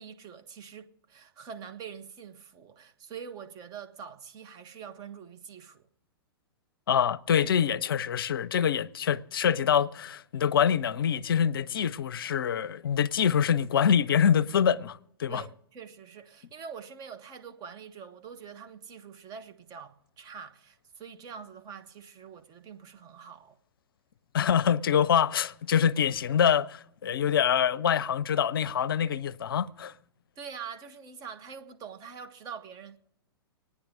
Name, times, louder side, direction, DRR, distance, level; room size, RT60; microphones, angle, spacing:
voice 1, 0.0-5.9 15.3-23.6 30.4-33.0, right 7 dB, 30° right, 1.2 m, -45 dB
voice 2, 6.9-15.4 24.3-29.9, left 8 dB, 65° left, 0.5 m, -25 dB
25.5 x 9.6 x 3.8 m
figure-of-eight pair, 105°, 13 cm